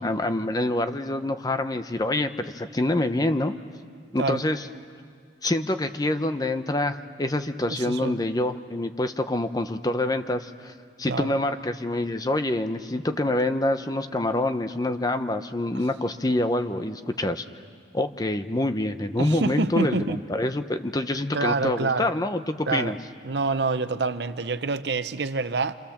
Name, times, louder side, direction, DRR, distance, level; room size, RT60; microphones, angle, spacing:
voice 1, 0.0-3.5 4.1-4.7 5.4-10.7 11.0-17.4 17.9-23.0, left 1 dB, 20° left, 0.8 m, -26 dB
voice 2, 7.7-8.2 11.1-11.3 19.2-20.2 21.3-22.1 22.7-22.9 23.2-25.7, right 3 dB, 70° right, 0.8 m, -26 dB
27.5 x 26.5 x 7.3 m
head